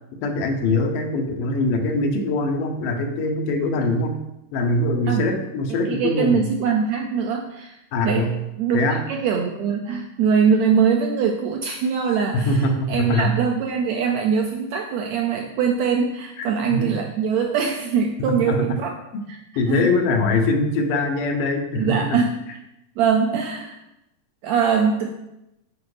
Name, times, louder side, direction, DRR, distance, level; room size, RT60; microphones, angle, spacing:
voice 1, 0.1-4.2 4.5-6.5 7.9-8.4 8.7-9.0 12.3-13.3 16.4-17.0 18.2-18.6 19.6-22.2, left 2 dB, 85° left, 4 dB, 2.6 m, -22 dB
voice 2, 5.8-8.3 8.6-8.8 9.1-18.9 19.3-19.4 19.7-19.9 21.8-22.3 23.0-23.8 24.4-25.1, right 6 dB, 80° right, 3 dB, 1.6 m, -22 dB
8.6 x 4.7 x 4.8 m, 0.89 s
omnidirectional pair, 3.8 m